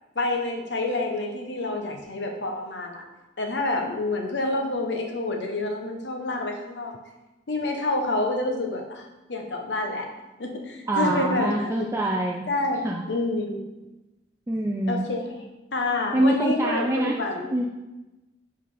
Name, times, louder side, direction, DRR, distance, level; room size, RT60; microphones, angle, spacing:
voice 1, 0.1-3.0 3.4-6.9 7.5-10.1 10.4-11.9 12.5-13.6 14.9-15.4 15.7-17.5, left 2 dB, 70° left, 2 dB, 1.0 m, -28 dB
voice 2, 10.9-12.5 12.8-13.1 14.5-15.1 16.1-17.2 17.5-17.6, right 1 dB, 15° right, -1 dB, 0.4 m, -25 dB
5.2 x 4.1 x 5.5 m, 1.1 s
head